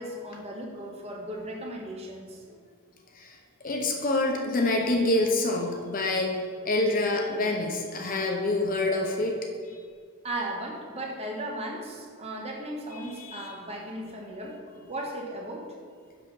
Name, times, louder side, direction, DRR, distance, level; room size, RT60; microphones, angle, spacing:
voice 1, 0.0-2.4 10.2-14.6 14.9-15.7, right 1 dB, 30° right, 0 dB, 1.0 m, -36 dB
voice 2, 3.6-9.3 13.2-13.5, left 2 dB, 40° left, 1 dB, 0.8 m, -26 dB
5.9 x 5.8 x 5.5 m, 2.1 s
head